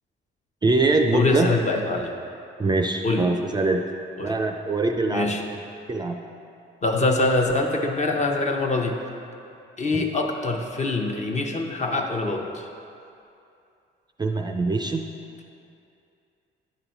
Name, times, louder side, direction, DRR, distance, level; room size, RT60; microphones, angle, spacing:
voice 1, 0.6-1.5 2.6-3.8 4.2-5.3 5.9-6.2 9.9-10.0 14.2-15.1, right 3 dB, 20° right, 4 dB, 0.4 m, -23 dB
voice 2, 1.1-2.1 3.0-3.3 4.2-4.3 5.1-5.4 6.8-9.0 9.8-12.7, left 2 dB, 35° left, 2 dB, 0.8 m, -24 dB
10.5 x 4.0 x 4.5 m, 2.6 s
cardioid pair, 90°, 20 cm